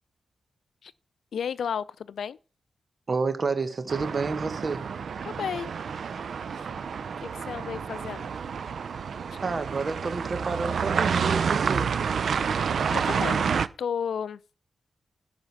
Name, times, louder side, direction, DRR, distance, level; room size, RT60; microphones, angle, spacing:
voice 1, 1.3-2.4 5.2-5.7 7.2-8.3 12.9-13.4 13.8-14.4, left 7 dB, 80° left, 0.5 m, -32 dB
voice 2, 3.1-4.9 9.4-11.9, right 4 dB, 50° right, 1.6 m, -29 dB
sound 1, 3.9-13.7, right 6 dB, 70° right, 0.5 m, -29 dB
10.5 x 5.1 x 7.2 m
cardioid pair, 60°, 0 cm